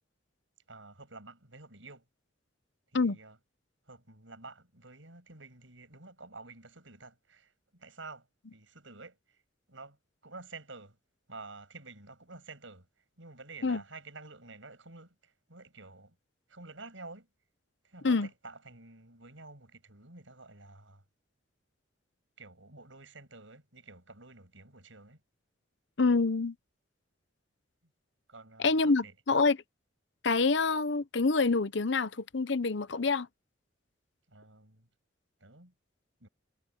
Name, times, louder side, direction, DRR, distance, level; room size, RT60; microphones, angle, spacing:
voice 1, 0.7-2.0 2.9-3.4 3.9-9.4 9.7-10.0 10.2-11.0 11.3-12.9 13.2-16.2 16.5-17.3 17.8-21.0 22.4-25.2 28.3-29.2 34.3-34.9 35.4-35.7 36.2-36.3, right 3 dB, 75° right, 7.0 m, -50 dB
voice 2, 26.0-26.5 28.6-29.6 30.2-33.3, left 4 dB, 65° left, 0.8 m, -26 dB
head